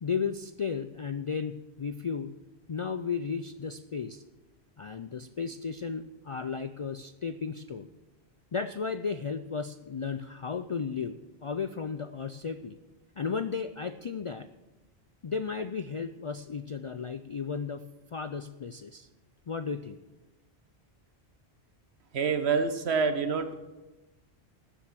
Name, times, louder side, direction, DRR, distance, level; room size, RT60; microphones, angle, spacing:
voice 1, 0.0-2.3 2.7-4.2 4.8-7.9 8.5-12.8 13.2-14.5 15.2-17.8 18.1-19.1 19.5-20.0, left 5 dB, 55° left, 11 dB, 0.3 m, -34 dB
voice 2, 22.1-23.5, right 5 dB, 75° right, 10 dB, 1.3 m, -27 dB
13.5 x 7.6 x 7.4 m, 1.1 s
omnidirectional pair, 1.1 m